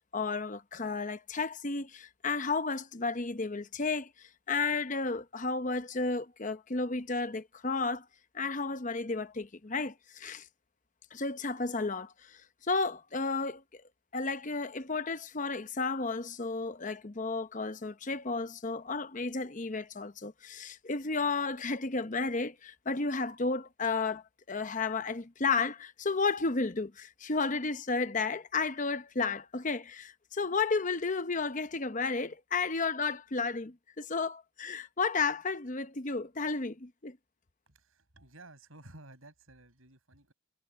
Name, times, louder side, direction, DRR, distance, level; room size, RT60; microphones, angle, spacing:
voice 1, 0.1-8.0 8.3-10.5 11.1-13.8 14.1-37.2, left 4 dB, 35° left, 0.8 m, -33 dB
voice 2, 37.7-40.3, right 2 dB, 80° right, 5.9 m, -54 dB
head